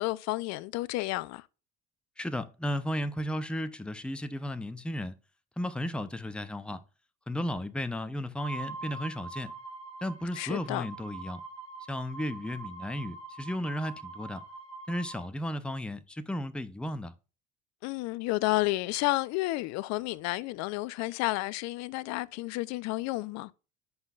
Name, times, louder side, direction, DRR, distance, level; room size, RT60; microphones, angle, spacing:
voice 1, 0.0-1.4 10.4-10.9 17.8-23.5, left 19 dB, 55° left, 0.5 m, -31 dB
voice 2, 2.2-5.1 5.6-6.8 7.3-9.5 10.0-11.4 11.9-14.4 14.9-17.1, left 1 dB, 5° left, 0.7 m, -34 dB
sound 1, 8.4-15.3, right 3 dB, 20° right, 3.2 m, -44 dB
9.5 x 5.5 x 2.4 m
hypercardioid pair, 70°, 31 cm